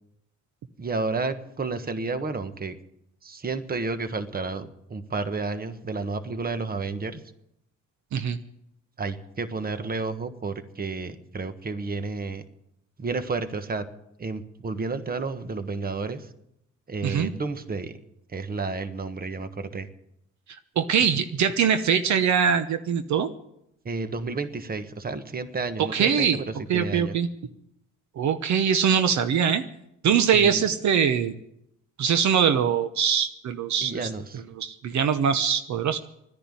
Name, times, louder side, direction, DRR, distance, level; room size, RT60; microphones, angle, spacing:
voice 1, 0.8-2.8 3.2-7.2 9.0-12.4 13.0-13.9 14.2-16.3 16.9-18.0 18.3-19.9 23.8-27.2 30.3-30.6 33.8-34.4, right 3 dB, 30° right, 11 dB, 1.3 m, -31 dB
voice 2, 20.8-23.3 25.9-26.4 26.7-27.3 28.2-29.6 30.0-31.3 32.0-34.1 34.6-36.0, right 7 dB, 65° right, 10 dB, 1.0 m, -22 dB
12.0 x 10.5 x 9.9 m, 0.80 s
cardioid pair, 90°, 30 cm